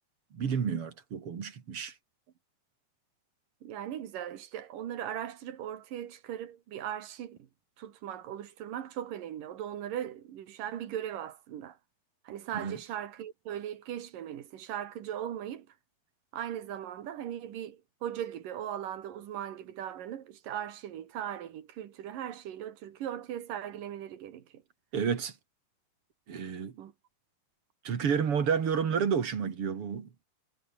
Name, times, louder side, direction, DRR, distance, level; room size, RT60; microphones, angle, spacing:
voice 1, 0.3-1.9 12.5-12.8 24.9-25.3 26.3-26.7 27.8-30.1, right 7 dB, 45° right, 2.8 m, -30 dB
voice 2, 3.6-7.5 7.8-11.8 12.2-15.7 16.3-24.6 26.8-26.9, right 10 dB, 70° right, 3.4 m, -39 dB
omnidirectional pair, 4.0 m